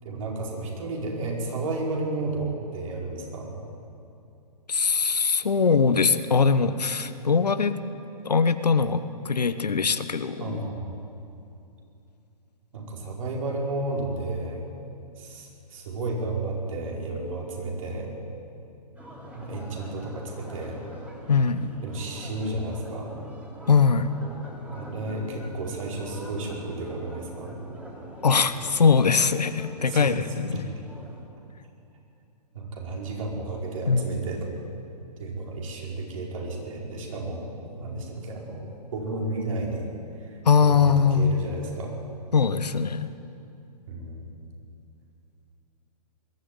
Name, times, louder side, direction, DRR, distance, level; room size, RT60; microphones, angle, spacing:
voice 1, 0.0-3.5 10.4-11.0 12.7-14.6 15.2-18.1 19.3-20.8 21.8-23.1 24.7-27.5 29.9-30.1 30.5-30.6 32.5-34.5 35.2-37.5 37.8-39.9 40.2-42.0 43.9-44.2, right 2 dB, 55° right, -2 dB, 5.2 m, -32 dB
voice 2, 4.7-7.8 8.2-10.6 21.3-21.7 23.7-24.1 28.2-30.6 33.9-34.0 40.4-41.4 42.3-43.1, left 5 dB, 75° left, 12 dB, 1.1 m, -21 dB
sound 1, 19.0-31.2, right 1 dB, 5° right, 3.3 m, -43 dB
21.0 x 13.5 x 9.5 m, 2.7 s
figure-of-eight pair, 120°, 21 cm